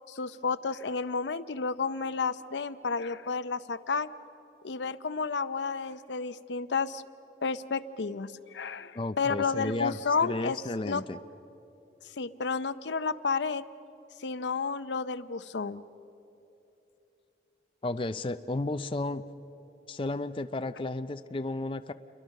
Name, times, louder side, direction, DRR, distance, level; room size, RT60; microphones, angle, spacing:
voice 1, 0.1-4.1 4.6-7.0 7.4-10.6 10.9-11.0 12.2-13.6 14.2-15.8, left 5 dB, 80° left, 14 dB, 0.7 m, -31 dB
voice 2, 8.9-11.2 17.8-19.2 19.9-21.9, left 2 dB, 30° left, 10 dB, 0.5 m, -33 dB
28.5 x 23.0 x 6.5 m, 2.9 s
head